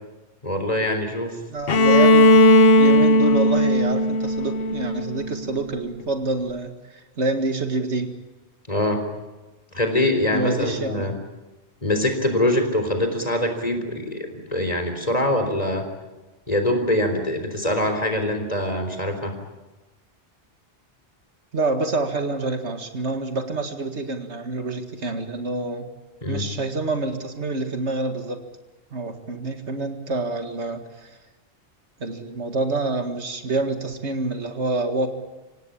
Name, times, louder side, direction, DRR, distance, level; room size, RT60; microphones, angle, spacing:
voice 1, 0.4-1.3 8.7-9.0 9.7-11.1 11.8-15.8 16.5-19.3 26.2-26.4, left 1 dB, 35° left, 5 dB, 3.9 m, -23 dB
voice 2, 1.5-2.4 2.8-8.1 10.3-11.1 21.5-25.9 26.3-28.4 28.9-31.2 32.0-35.1, right 2 dB, 80° right, 6 dB, 2.2 m, -27 dB
Bowed string instrument, 1.7-5.5, left 1 dB, 60° left, 1.2 m, -16 dB
26.5 x 17.5 x 8.7 m, 1.1 s
omnidirectional pair, 1.1 m